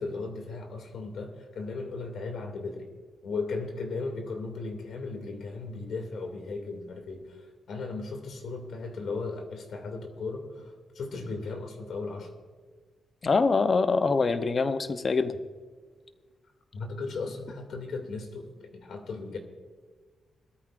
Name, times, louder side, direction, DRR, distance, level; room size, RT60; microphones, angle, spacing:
voice 1, 0.0-2.9 3.2-12.3 16.7-19.4, left 3 dB, 65° left, 4 dB, 2.4 m, -36 dB
voice 2, 13.2-15.4, left 4 dB, 30° left, 10 dB, 0.7 m, -24 dB
21.5 x 13.5 x 2.5 m, 1.5 s
wide cardioid pair, 150°, 0 cm